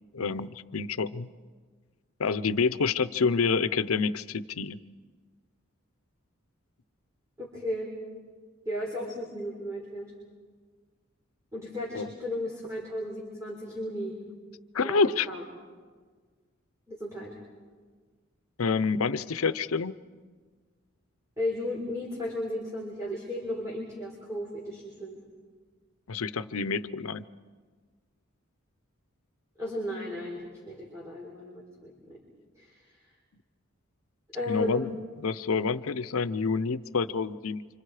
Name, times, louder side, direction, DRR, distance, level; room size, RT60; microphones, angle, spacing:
voice 1, 0.1-1.3 2.2-4.8 11.9-12.1 14.7-15.3 18.6-19.9 26.1-27.3 34.5-37.8, left 5 dB, 90° left, 15 dB, 0.7 m, -28 dB
voice 2, 7.4-7.9 8.7-10.1 11.5-14.2 14.8-15.4 16.9-17.3 21.4-25.2 29.6-32.2 32.5-32.9 34.3-34.9, left 1 dB, 15° right, -4 dB, 4.2 m, -35 dB
30.0 x 26.0 x 5.0 m, 1.5 s
head